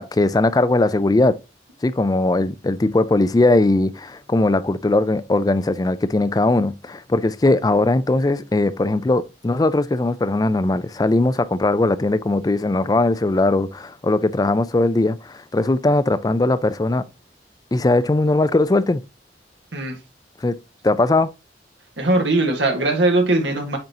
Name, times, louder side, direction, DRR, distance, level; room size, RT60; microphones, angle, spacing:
voice 1, 0.0-1.4 1.8-17.0 17.7-19.0 20.4-20.6 20.8-21.3, left 2 dB, 20° left, 0.4 m, -19 dB
voice 2, 22.0-23.8, right 2 dB, 75° right, 1.6 m, -20 dB
8.7 x 3.9 x 2.8 m
head